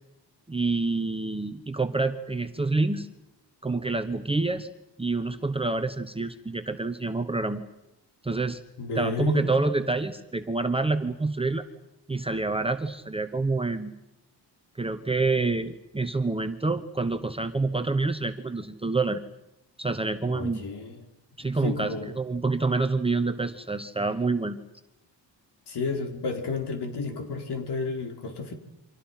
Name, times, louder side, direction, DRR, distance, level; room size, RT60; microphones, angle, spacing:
voice 1, 0.5-3.1 3.6-4.7 5.0-7.6 8.2-8.6 8.9-11.6 12.1-13.9 14.8-19.2 19.8-20.6 21.4-24.6, right 3 dB, 10° right, 8 dB, 1.0 m, -27 dB
voice 2, 8.8-9.6 20.3-21.0 21.6-22.1 25.7-28.5, left 3 dB, 60° left, 4 dB, 4.5 m, -31 dB
29.0 x 25.5 x 5.8 m, 0.90 s
wide cardioid pair, 145°, 45 cm